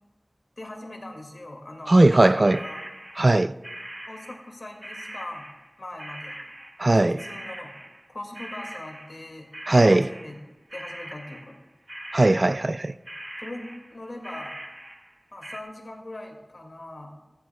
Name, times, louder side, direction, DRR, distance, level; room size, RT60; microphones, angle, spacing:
voice 1, 0.6-2.9 4.1-5.4 5.8-6.4 6.9-7.7 8.1-10.4 10.7-11.5 13.4-14.6 15.3-17.3, left 1 dB, 70° left, 2.1 m, -40 dB
voice 2, 1.9-2.6 3.2-3.5 6.8-7.2 9.7-10.1 12.1-12.9, right 2 dB, 55° right, 0.3 m, -18 dB
sound 1, 2.4-9.3 9.5-11.6 11.9-12.8 13.1-15.6, right 1 dB, 25° right, 1.3 m, -41 dB
15.0 x 14.0 x 2.3 m
wide cardioid pair, 45°, 0 cm